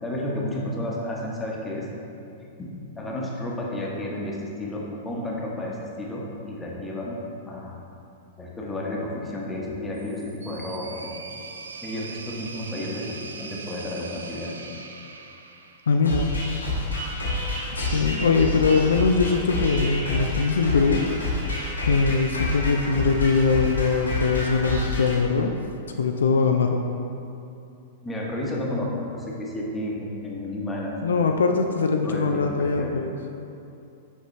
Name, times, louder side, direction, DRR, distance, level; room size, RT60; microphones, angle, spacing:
voice 1, 0.0-1.9 2.6-7.7 8.4-11.1 11.8-14.6 28.0-31.2 32.0-32.9, left 1 dB, 15° left, -3 dB, 1.1 m, -32 dB
sound 1, 9.9-16.2, right 4 dB, 75° right, 0.4 m, -41 dB
voice 2, 15.9-16.3 16.9-17.1 17.8-21.3 21.9-25.5 26.0-26.8 31.0-33.1, left 4 dB, 70° left, 4 dB, 0.3 m, -22 dB
sound 2, 16.0-25.2, left 2 dB, 85° left, 1.3 m, -28 dB
6.4 x 5.3 x 3.1 m, 2.7 s
figure-of-eight pair, 100°, 0 cm